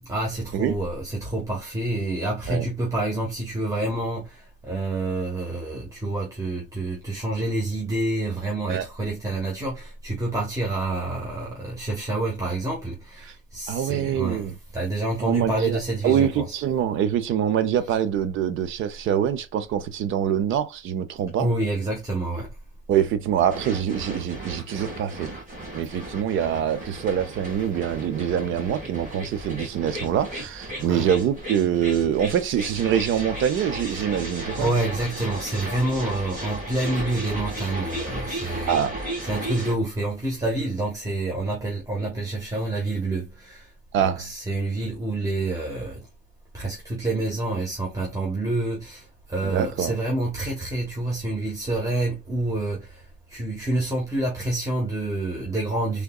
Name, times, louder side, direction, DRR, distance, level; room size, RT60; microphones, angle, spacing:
voice 1, 0.1-16.4 21.4-22.5 30.8-31.1 33.9-34.0 34.6-38.8 39.3-43.7 44.0-46.1 46.5-56.0, right 2 dB, 15° right, 1.4 m, -28 dB
voice 2, 13.7-14.5 15.2-21.5 22.9-25.3 25.7-34.7 38.7-38.9 43.9-44.3 49.4-49.9, right 9 dB, 80° right, 0.6 m, -24 dB
sound 1, 23.5-39.7, right 1 dB, 40° right, 2.3 m, -35 dB
3.6 x 3.6 x 2.3 m
cardioid pair, 90°, 20 cm